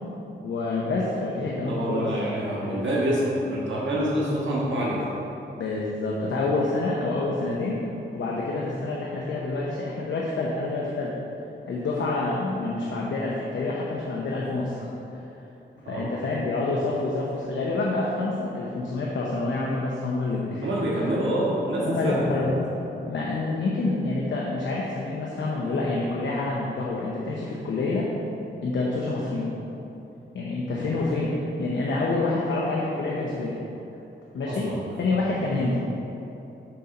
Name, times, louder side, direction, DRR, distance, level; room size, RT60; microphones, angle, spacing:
voice 1, 0.4-2.1 2.6-2.9 5.6-7.8 8.1-11.1 11.7-15.2 15.9-20.7 20.9-21.1 21.8-22.5 23.1-28.1 28.6-29.5 30.3-31.3 31.6-33.6 34.3-34.7 35.0-35.8, left 3 dB, 90° left, -4 dB, 0.8 m, -27 dB
voice 2, 1.7-5.0 15.8-16.1 20.6-22.6 30.7-30.9 34.4-34.7, right 1 dB, 90° right, -6 dB, 1.6 m, -26 dB
7.7 x 4.3 x 5.3 m, 3.0 s
cardioid pair, 85°, 19 cm